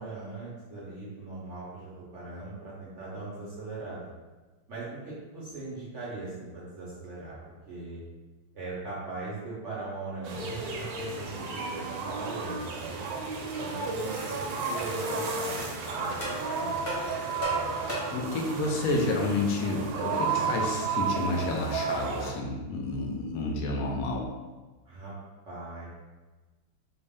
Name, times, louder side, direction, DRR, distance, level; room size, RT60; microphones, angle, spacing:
voice 1, 0.0-4.1 4.7-7.4 7.7-8.0 8.5-13.0 13.6-17.1 17.5-17.7 24.8-25.1 25.5-25.9, right 3 dB, 65° right, -7 dB, 0.7 m, -40 dB
sound 1, 10.2-22.3, right 4 dB, 85° right, 1.4 m, -32 dB
sound 2, 13.5-13.6 14.2-14.4 14.8-14.9 15.6-15.7 16.2-16.4 16.9-18.3, equal, 40° left, 1.0 m, -36 dB
voice 2, 18.1-24.3, left 2 dB, 80° left, -1 dB, 0.8 m, -30 dB
4.0 x 2.1 x 3.5 m, 1.2 s
omnidirectional pair, 2.2 m